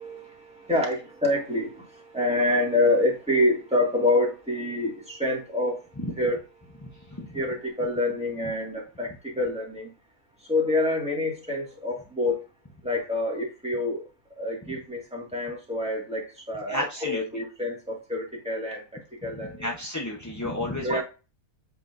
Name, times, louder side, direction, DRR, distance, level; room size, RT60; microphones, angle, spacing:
voice 1, 0.0-5.8 6.1-6.4 7.3-9.9 10.5-12.4 12.8-14.0 14.4-19.7 20.4-20.5 20.8-21.0, left 2 dB, 5° right, -3 dB, 1.9 m, -27 dB
voice 2, 16.7-17.2 19.6-21.0, left 1 dB, 20° left, -2 dB, 0.5 m, -31 dB
8.0 x 4.7 x 2.6 m, 0.31 s
omnidirectional pair, 1.6 m